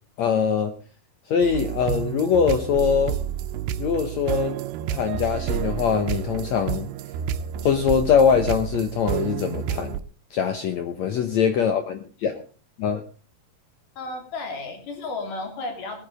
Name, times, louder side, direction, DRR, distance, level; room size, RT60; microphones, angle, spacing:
voice 1, 0.2-0.7 1.3-3.2 3.8-4.6 4.9-6.9 7.6-10.0 10.3-12.4 12.8-13.0, left 7 dB, 80° left, 8 dB, 1.5 m, -22 dB
sound 1, 1.4-10.0, right 10 dB, 85° right, 2.8 m, -29 dB
voice 2, 14.0-16.0, left 3 dB, 55° left, 4 dB, 4.6 m, -33 dB
18.5 x 9.2 x 5.0 m, 0.39 s
omnidirectional pair, 4.6 m